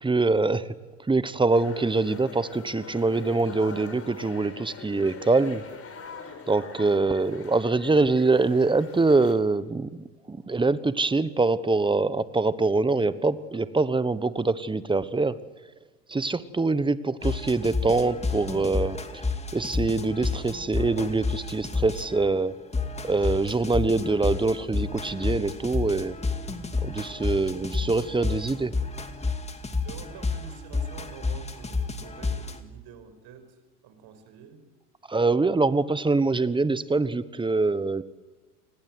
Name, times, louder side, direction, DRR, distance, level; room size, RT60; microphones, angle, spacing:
voice 1, 0.0-0.7 1.1-5.6 6.5-15.4 16.1-22.6 23.0-26.2 26.8-28.7 35.1-38.0, right 3 dB, 10° right, 15 dB, 1.2 m, -24 dB
sound 1, 1.5-9.3, left 5 dB, 30° left, 4.6 m, -43 dB
voice 2, 6.6-7.0 27.7-28.1 29.8-33.6 33.8-34.6, right 7 dB, 55° right, 9 dB, 6.1 m, -47 dB
sound 2, 17.2-22.2 22.7-32.6, left 3 dB, 15° left, 2.3 m, -30 dB
28.5 x 20.5 x 8.0 m, 1.2 s
hypercardioid pair, 100°, 46 cm